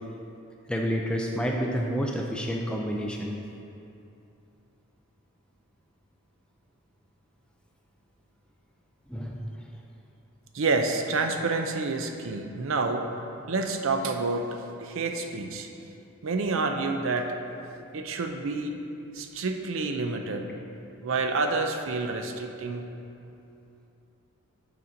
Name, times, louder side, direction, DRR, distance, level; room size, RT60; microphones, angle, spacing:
voice 1, 0.7-3.3 9.1-9.4, equal, 5° left, 0 dB, 0.3 m, -29 dB
voice 2, 10.5-13.1 13.5-15.7 16.2-17.3 17.9-18.8 19.1-20.5 21.0-22.9, right 3 dB, 60° right, 5 dB, 0.5 m, -28 dB
6.7 x 4.2 x 5.1 m, 2.7 s
head